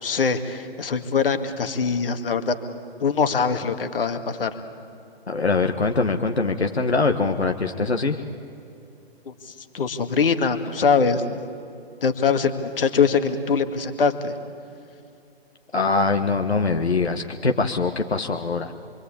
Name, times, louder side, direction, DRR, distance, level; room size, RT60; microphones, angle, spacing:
voice 1, 0.0-2.5 3.0-4.5 9.3-11.4 12.0-14.3, left 5 dB, 60° left, 7 dB, 2.0 m, -23 dB
voice 2, 5.3-8.2 15.7-18.7, left 3 dB, 85° left, 4 dB, 1.5 m, -23 dB
26.5 x 23.5 x 8.6 m, 2.6 s
figure-of-eight pair, 135°, 31 cm